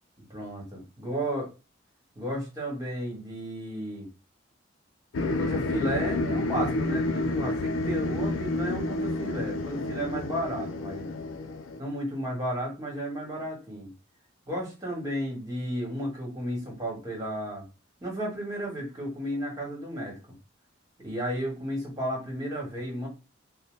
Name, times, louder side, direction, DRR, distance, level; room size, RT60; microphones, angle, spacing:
voice 1, 0.3-1.5 2.2-4.1 5.3-11.1 11.8-13.9 14.5-17.6 18.0-20.2 21.0-23.1, equal, 20° right, -2 dB, 1.2 m, -33 dB
sound 1, 5.1-11.8, left 2 dB, 90° left, 0.4 m, -29 dB
2.7 x 2.1 x 3.1 m, 0.28 s
head